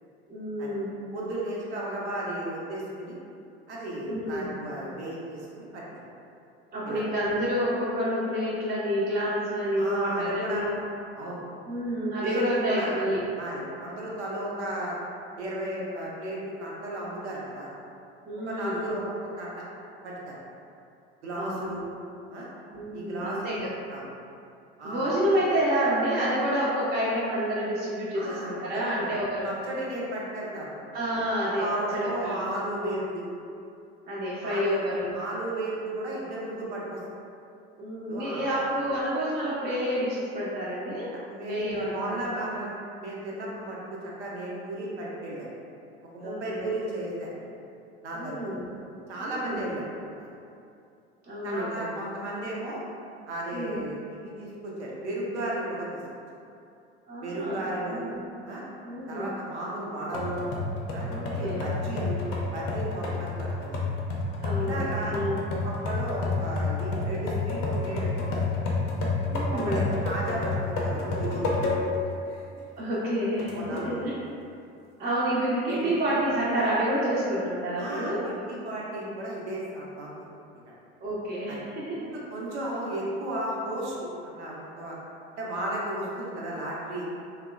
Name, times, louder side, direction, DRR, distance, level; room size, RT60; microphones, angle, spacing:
voice 1, 0.3-1.1 4.0-4.6 6.7-10.7 11.7-13.2 18.3-18.9 21.4-21.7 22.7-23.7 24.8-29.5 30.9-31.7 31.9-32.5 34.1-35.2 37.8-41.1 41.5-42.3 46.2-46.7 48.1-48.7 49.2-49.7 51.2-51.9 53.5-53.8 57.1-58.2 58.8-59.3 61.1-61.7 64.4-65.5 69.3-70.0 72.8-74.2 75.0-78.3 81.0-82.1, equal, 25° right, -8 dB, 0.5 m, -29 dB
voice 2, 1.1-3.1 3.7-6.0 6.9-7.0 9.8-10.7 11.2-11.4 12.2-12.9 13.4-14.9 15.4-17.7 18.5-19.6 20.0-20.4 21.2-21.8 22.3-22.5 22.9-24.1 24.8-25.2 28.1-29.1 29.4-30.8 31.4-33.2 34.4-37.0 38.0-38.4 41.3-42.7 43.0-43.8 44.0-45.5 46.1-47.6 48.0-48.6 49.1-49.8 50.2-50.3 51.4-52.8 53.3-56.0 57.2-58.0 58.5-58.6 59.1-60.4 60.9-61.1 61.4-62.2 62.5-63.5 64.6-65.2 65.6-68.6 69.5-71.5 73.5-74.0 75.7-75.9 77.8-80.1 80.7-80.8 81.5-81.6 82.0-83.9 84.2-85.0 85.4-87.0, right 1 dB, 80° right, -4 dB, 0.6 m, -34 dB
sound 1, 60.1-72.1 72.5-72.6 73.4-74.0, left 3 dB, 45° left, 0.5 m, -29 dB
2.7 x 2.0 x 2.3 m, 2.6 s
hypercardioid pair, 70°, 33 cm